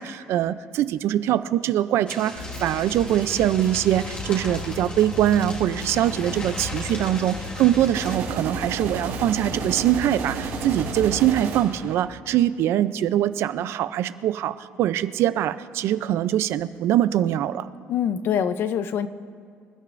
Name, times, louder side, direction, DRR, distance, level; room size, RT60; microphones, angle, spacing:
voice 1, 0.0-17.7, right 12 dB, 60° right, 14 dB, 0.5 m, -23 dB
sound 1, 2.1-8.2, left 1 dB, 20° left, 1.8 m, -38 dB
sound 2, 2.4-11.4, left 3 dB, 85° left, 1.8 m, -36 dB
sound 3, 7.9-11.9, right 6 dB, 80° right, 2.3 m, -32 dB
voice 2, 17.9-19.1, left 8 dB, 50° left, 12 dB, 0.6 m, -24 dB
26.0 x 13.0 x 2.6 m, 2.3 s
cardioid pair, 160°, 5 cm